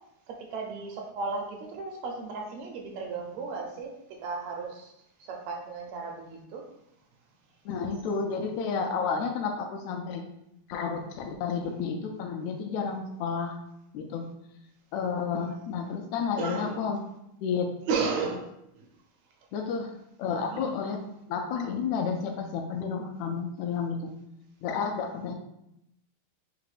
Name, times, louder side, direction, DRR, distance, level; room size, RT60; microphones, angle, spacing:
voice 1, 0.3-3.9 4.2-4.9 5.2-6.7 16.4-16.8 17.9-18.5 20.5-20.8, right 4 dB, 75° right, 1 dB, 1.8 m, -34 dB
voice 2, 7.7-10.2 10.7-13.6 13.9-14.3 14.9-17.0 17.4-17.7 19.5-19.9 20.2-21.0 21.3-24.1 24.6-25.3, left 6 dB, 80° left, 4 dB, 1.7 m, -31 dB
4.9 x 2.2 x 4.8 m, 0.82 s
omnidirectional pair, 3.3 m